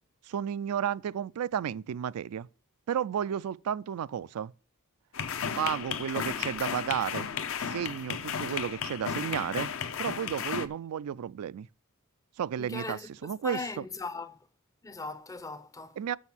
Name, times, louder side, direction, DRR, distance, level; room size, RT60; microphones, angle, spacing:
voice 1, 0.3-2.5 2.9-4.5 5.6-7.3 7.6-9.7 10.0-11.7 12.4-13.8 16.0-16.2, right 9 dB, 85° right, 0.3 m, -32 dB
sound 1, 5.1-10.7, left 7 dB, 65° left, 0.6 m, -34 dB
voice 2, 12.6-14.4 14.8-16.0, left 3 dB, 15° left, 0.5 m, -39 dB
6.6 x 6.2 x 7.1 m
head